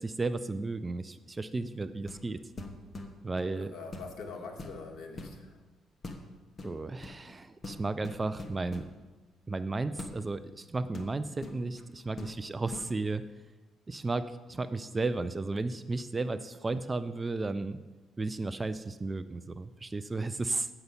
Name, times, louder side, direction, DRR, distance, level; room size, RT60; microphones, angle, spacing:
voice 1, 0.0-2.4 3.2-3.7 6.6-8.8 9.5-13.2 13.9-17.8 18.2-20.7, right 3 dB, 20° right, 12 dB, 0.3 m, -34 dB
sound 1, 2.0-2.3 2.6-3.5 3.9-4.2 4.5-5.4 6.0-6.3 6.6-7.2 7.6-8.9 10.0-10.2 10.9-11.9 12.2-12.4 12.7-12.9, left 2 dB, 25° left, 1.2 m, -43 dB
voice 2, 3.5-5.6, left 4 dB, 55° left, 1 dB, 1.8 m, -44 dB
7.0 x 6.8 x 8.0 m, 1.2 s
cardioid pair, 135°, 0 cm